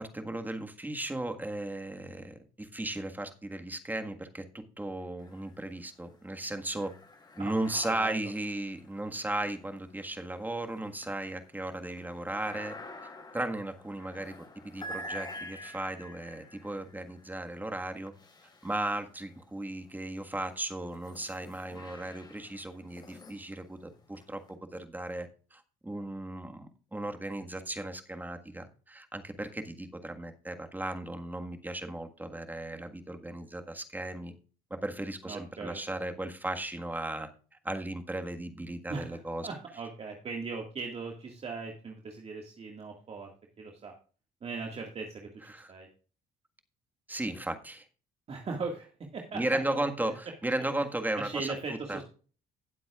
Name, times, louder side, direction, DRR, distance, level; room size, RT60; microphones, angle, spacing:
voice 1, 0.0-6.9 7.3-12.8 13.3-14.3 14.6-18.1 18.6-34.3 34.7-37.3 37.6-39.5 45.5-45.7 47.1-47.8 49.3-51.5 51.9-52.0, right 1 dB, 10° right, 6 dB, 1.6 m, -36 dB
sound 1, 5.2-5.9 6.2-19.4 20.0-24.5, left 1 dB, 25° left, 2.8 m, -48 dB
voice 2, 7.9-8.3 35.3-35.8 38.9-43.3 43.6-43.9 44.4-45.9 48.3-48.9 49.1-49.4 49.7-49.9 51.2-52.0, right 4 dB, 35° right, 1 dB, 2.0 m, -39 dB
18.0 x 7.7 x 2.4 m, 0.38 s
cardioid pair, 110°, 17 cm